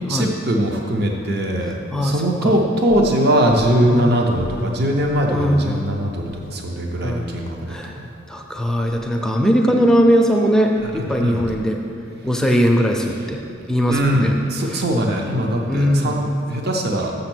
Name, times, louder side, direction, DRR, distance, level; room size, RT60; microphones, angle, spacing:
voice 1, 0.1-8.1 10.8-11.5 13.9-17.1, right 1 dB, 50° right, 1 dB, 0.6 m, -21 dB
voice 2, 5.3-5.8 7.0-7.3 7.7-8.0 8.3-11.8 12.2-13.4 13.7-14.3 14.7-14.8 15.7-16.2, equal, 5° left, 1 dB, 0.4 m, -19 dB
6.7 x 6.6 x 6.0 m, 2.6 s
head